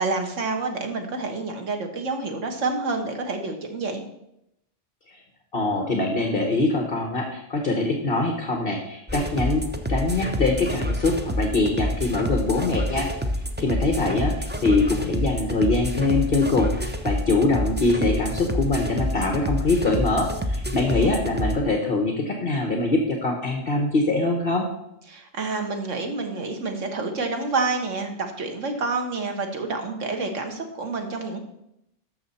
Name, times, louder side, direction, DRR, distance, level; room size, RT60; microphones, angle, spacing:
voice 1, 0.0-4.0 20.9-21.2 25.1-31.4, right 3 dB, 90° right, 4 dB, 1.7 m, -28 dB
voice 2, 5.5-9.6 9.9-13.1 13.6-24.7, left 2 dB, 50° left, 2 dB, 1.3 m, -23 dB
sound 1, 9.1-21.6, equal, 10° right, 0.5 m, -28 dB
12.5 x 6.6 x 4.2 m, 0.82 s
omnidirectional pair, 1.3 m